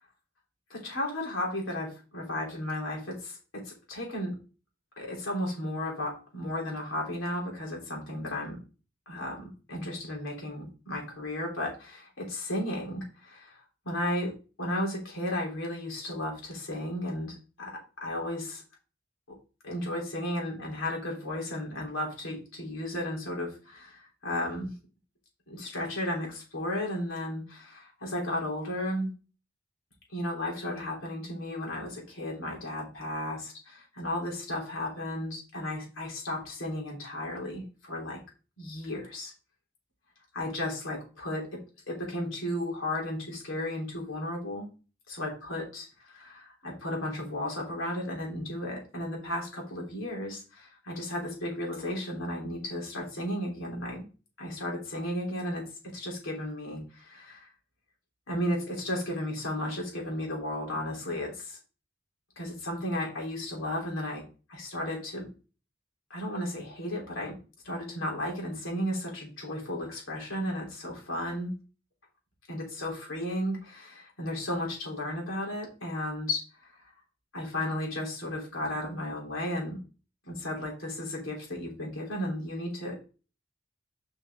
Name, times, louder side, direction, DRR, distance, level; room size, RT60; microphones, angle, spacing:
voice 1, 0.7-4.3 5.0-8.6 9.1-14.3 14.6-18.6 19.3-19.4 19.6-24.7 25.5-29.1 30.1-38.2 38.6-39.3 40.3-41.6 41.9-44.7 45.1-54.0 54.4-55.6 55.9-57.5 58.3-61.6 62.4-64.2 64.5-65.3 66.1-67.3 67.6-71.5 72.5-76.8 77.3-79.8 80.3-83.2, left 1 dB, 90° left, -1 dB, 3.5 m, -34 dB
7.1 x 5.5 x 3.7 m, 0.34 s
head